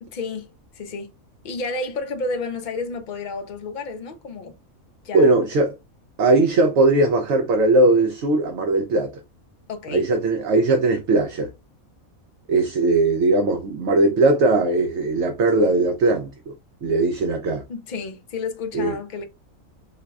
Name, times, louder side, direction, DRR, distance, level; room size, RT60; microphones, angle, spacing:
voice 1, 0.0-1.2 1.4-4.5 5.0-5.4 9.7-10.1 17.0-17.1 17.7-19.2, left 3 dB, 55° left, 0.5 m, -31 dB
voice 2, 5.1-5.7 6.2-9.1 9.9-11.5 12.5-16.5 16.8-17.6 18.7-18.9, right 2 dB, 65° right, 0.8 m, -19 dB
4.6 x 2.2 x 2.3 m
omnidirectional pair, 1.5 m